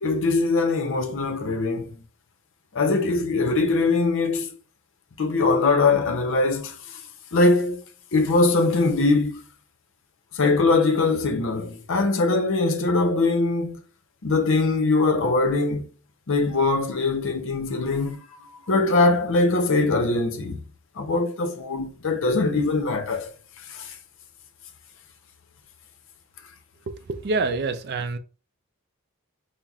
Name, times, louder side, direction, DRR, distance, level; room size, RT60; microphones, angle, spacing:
voice 1, 0.0-1.9 2.7-4.5 5.2-6.7 7.3-7.8 8.1-9.3 10.4-13.8 14.2-15.8 16.3-18.2 18.7-20.6 21.0-23.3 23.7-23.9, left 3 dB, 60° left, 0.6 m, -22 dB
voice 2, 26.9-28.2, right 3 dB, 50° right, 0.4 m, -27 dB
5.5 x 2.0 x 2.3 m
head